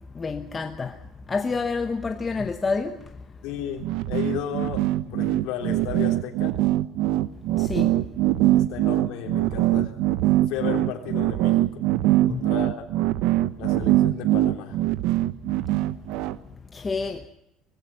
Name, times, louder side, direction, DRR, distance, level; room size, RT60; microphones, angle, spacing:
voice 1, 0.2-0.9 1.3-3.0 7.6-8.0 12.3-12.4 16.7-17.2, left 4 dB, 20° left, 1.0 m, -28 dB
voice 2, 3.4-6.5 8.5-9.9 10.5-11.8 12.3-12.9 13.6-14.8, left 9 dB, 80° left, 3.5 m, -34 dB
sound 1, 3.8-16.4, right 15 dB, 80° right, 0.8 m, -22 dB
19.0 x 16.5 x 9.6 m
cardioid pair, 145°, 0 cm